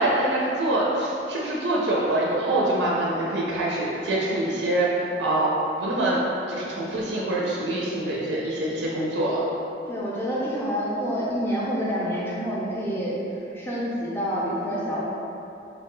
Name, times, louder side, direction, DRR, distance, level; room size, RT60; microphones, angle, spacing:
voice 1, 0.0-5.5 5.8-6.2 6.5-9.4, right 1 dB, 75° right, -5 dB, 0.4 m, -25 dB
voice 2, 9.9-13.2 13.5-15.0, equal, 10° left, -7 dB, 0.5 m, -27 dB
4.1 x 2.2 x 3.0 m, 2.8 s
head